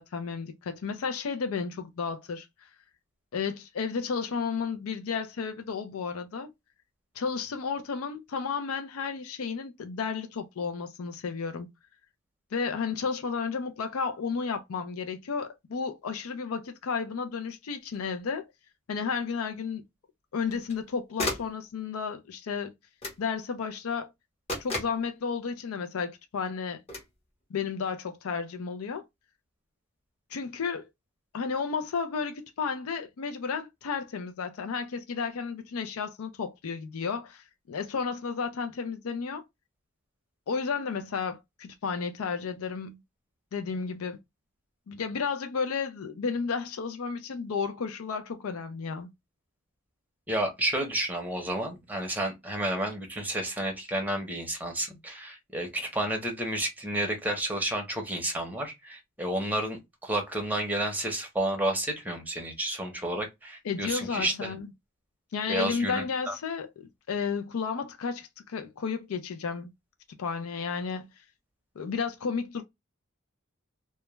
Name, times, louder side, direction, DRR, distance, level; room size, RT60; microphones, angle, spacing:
voice 1, 0.0-2.5 3.3-6.5 7.2-11.7 12.5-18.5 18.9-19.8 20.3-22.7 23.2-24.1 24.6-26.8 27.5-29.0 30.3-30.9 31.3-39.4 40.5-43.0 43.5-44.2 44.9-49.1 63.6-64.7 65.3-69.7 70.2-71.1 71.8-72.6, left 5 dB, 80° left, 0.4 m, -32 dB
sound 1, 17.9-18.0 20.4-20.8 21.2-21.6 23.0-23.3 24.5-25.0 26.9-27.1, left 2 dB, 30° left, 0.9 m, -34 dB
voice 2, 50.3-64.5 65.5-66.3, right 1 dB, 10° right, 0.7 m, -31 dB
2.2 x 2.1 x 2.9 m
head